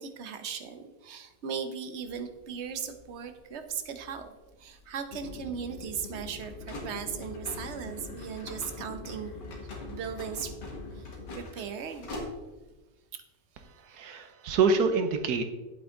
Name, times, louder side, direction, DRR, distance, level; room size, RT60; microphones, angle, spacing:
voice 1, 0.0-4.3 4.6-9.3 9.9-10.5 10.9-12.2 13.1-13.2, right 7 dB, 50° right, 8 dB, 0.9 m, -38 dB
sound 1, 2.0-12.8, left 2 dB, 85° left, 2.3 m, -46 dB
sound 2, 5.1-11.4, left 3 dB, 40° left, 1.0 m, -44 dB
voice 2, 13.8-15.4, right 4 dB, 70° right, 8 dB, 1.3 m, -26 dB
8.5 x 8.0 x 3.8 m, 1.1 s
omnidirectional pair, 1.8 m